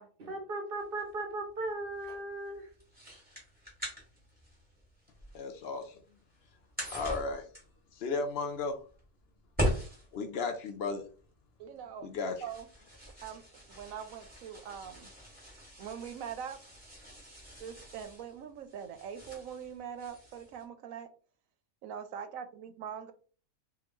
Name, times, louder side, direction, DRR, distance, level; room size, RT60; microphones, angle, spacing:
voice 1, 0.2-2.7, right 2 dB, 45° right, 1.0 m, -37 dB
sound 1, 0.8-20.6, equal, 5° right, 1.9 m, -42 dB
voice 2, 5.3-6.0 6.9-7.4 7.9-8.8 10.1-11.0 12.0-12.4, left 4 dB, 60° left, 0.6 m, -34 dB
voice 3, 11.6-12.1 12.4-12.7 13.0-15.1 15.8-16.6 17.6-21.1 21.8-23.1, right 8 dB, 75° right, 1.0 m, -43 dB
3.6 x 3.5 x 3.0 m
omnidirectional pair, 1.5 m